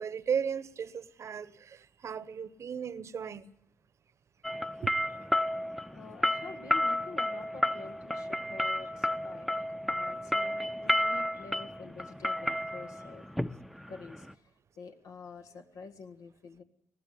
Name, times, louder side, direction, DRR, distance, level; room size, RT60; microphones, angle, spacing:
voice 1, 0.0-3.4 4.8-4.9, right 7 dB, 55° right, 1.0 m, -35 dB
sound 1, 4.4-14.3, left 1 dB, ahead, 0.8 m, -31 dB
voice 2, 5.9-13.3 13.9-14.5 14.8-16.6, left 4 dB, 75° left, 1.9 m, -48 dB
19.5 x 14.5 x 9.8 m
supercardioid pair, 50°, 6 cm